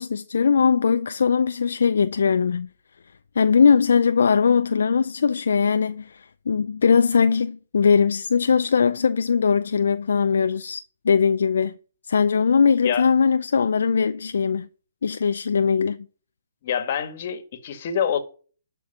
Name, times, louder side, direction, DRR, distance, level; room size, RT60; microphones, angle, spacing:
voice 1, 0.0-2.7 3.4-11.8 12.0-14.7 15.0-16.1, left 6 dB, 70° left, 0.5 m, -20 dB
voice 2, 16.6-18.2, left 8 dB, 50° left, 1.7 m, -26 dB
12.0 x 4.6 x 8.5 m
figure-of-eight pair, 135°, 0 cm